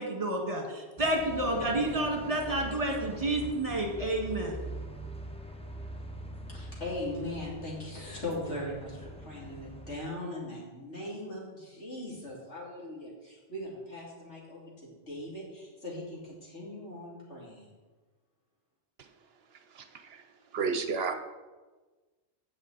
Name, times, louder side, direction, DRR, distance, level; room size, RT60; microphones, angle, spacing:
voice 1, 0.0-4.6, right 1 dB, 30° right, 0 dB, 1.8 m, -30 dB
sound 1, 1.0-10.0, right 1 dB, 5° left, 0.5 m, -43 dB
voice 2, 6.5-17.7, left 1 dB, 85° left, -4 dB, 3.0 m, -40 dB
voice 3, 20.5-21.1, right 5 dB, 65° right, 8 dB, 0.9 m, -29 dB
16.0 x 5.4 x 4.0 m, 1.3 s
omnidirectional pair, 1.2 m